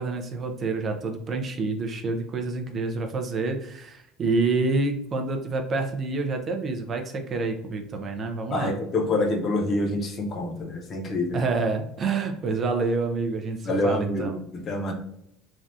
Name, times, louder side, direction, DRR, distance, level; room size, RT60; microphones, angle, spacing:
voice 1, 0.0-8.7 11.3-14.3, right 3 dB, 35° right, 4 dB, 0.4 m, -28 dB
voice 2, 8.5-11.4 13.6-14.9, left 2 dB, 40° left, 2 dB, 0.7 m, -26 dB
3.3 x 2.3 x 2.6 m, 0.78 s
cardioid pair, 130°, 0 cm